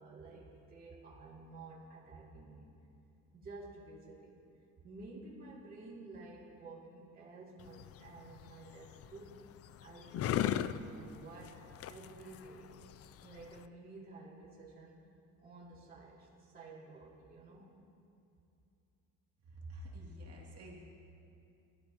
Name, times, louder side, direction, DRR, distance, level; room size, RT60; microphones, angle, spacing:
voice 1, 0.0-2.7 3.3-4.4 4.8-9.5 9.8-12.8 13.2-15.1 15.4-17.8, right 3 dB, 30° right, -6 dB, 2.6 m, -52 dB
sound 1, 7.6-13.7, left 11 dB, 50° left, 0.4 m, -39 dB
voice 2, 19.5-20.8, equal, 50° right, -3 dB, 2.7 m, -48 dB
23.0 x 13.0 x 3.0 m, 2.7 s
cardioid pair, 135°, 31 cm